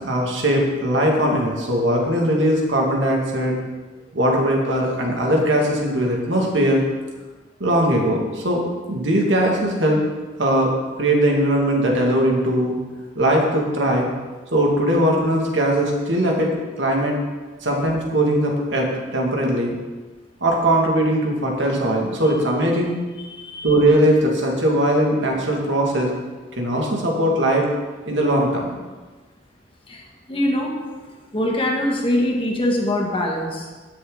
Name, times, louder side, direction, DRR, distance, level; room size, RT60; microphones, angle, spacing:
voice 1, 0.0-3.6 4.1-6.8 7.6-10.0 10.4-10.7 11.0-12.8 13.2-14.1 14.5-17.2 17.6-19.7 20.4-23.0 23.6-26.1 26.5-27.7 28.1-28.7, right 1 dB, 75° right, -1 dB, 2.4 m, -20 dB
voice 2, 23.2-23.7 29.9-30.7 31.3-33.7, left 1 dB, 30° left, 0 dB, 1.8 m, -23 dB
17.5 x 6.9 x 4.0 m, 1.3 s
head